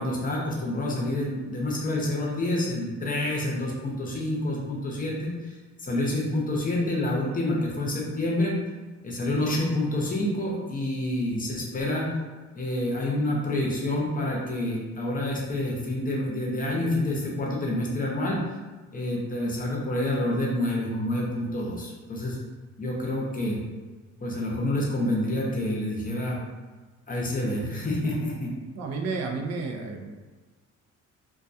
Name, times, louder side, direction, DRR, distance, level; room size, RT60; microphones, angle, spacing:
voice 1, 0.0-5.6 5.8-8.6 9.0-12.1 12.5-18.4 18.9-22.4 22.8-23.6 24.2-26.4 27.1-28.5, left 1 dB, 30° left, -3 dB, 0.7 m, -28 dB
voice 2, 28.8-30.1, right 4 dB, 60° right, 2 dB, 0.4 m, -31 dB
2.2 x 2.2 x 2.6 m, 1.3 s
cardioid pair, 90°, 30 cm